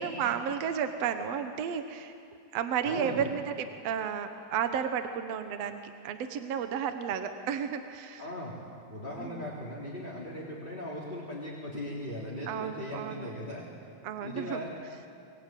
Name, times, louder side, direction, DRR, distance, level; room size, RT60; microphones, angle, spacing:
voice 1, 0.0-2.1 2.5-8.3 9.2-9.5 12.5-13.3 14.0-14.6, right 7 dB, 65° right, 8 dB, 2.0 m, -32 dB
voice 2, 2.8-3.3 8.2-13.6 14.2-14.7, left 1 dB, 15° left, -5 dB, 3.4 m, -39 dB
25.0 x 22.0 x 9.1 m, 2.5 s
omnidirectional pair, 3.6 m